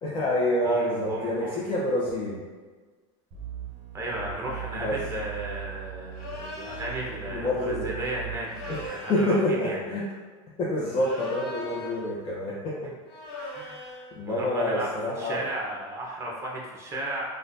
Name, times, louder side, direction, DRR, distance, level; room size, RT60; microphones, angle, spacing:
voice 1, 0.0-2.4 4.7-5.0 7.3-7.9 8.7-8.8 9.1-10.0 10.6-12.9 13.4-13.6 14.2-15.5, left 1 dB, 30° left, -7 dB, 0.8 m, -27 dB
voice 2, 0.6-1.6 3.9-9.8 13.5-14.9 15.2-17.2, right 1 dB, 15° right, -3 dB, 1.0 m, -35 dB
sound 1, 3.3-8.9, right 11 dB, 45° right, 0.8 m, -40 dB
sound 2, 6.1-7.0 8.4-9.5 10.9-12.1 13.1-14.1, left 2 dB, 60° left, 1.2 m, -39 dB
4.2 x 2.5 x 2.6 m, 1.4 s
supercardioid pair, 120°, 16 cm